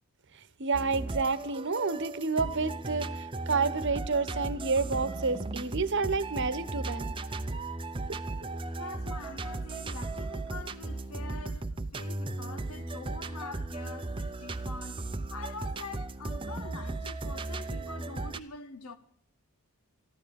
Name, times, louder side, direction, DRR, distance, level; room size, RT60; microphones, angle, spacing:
voice 1, 0.6-7.1, right 4 dB, 55° right, 1.1 m, -29 dB
sound 1, 0.7-18.4, right 2 dB, 20° right, 0.6 m, -36 dB
voice 2, 8.8-15.0 15.3-19.0, left 3 dB, 75° left, 0.9 m, -45 dB
14.0 x 12.5 x 7.1 m
head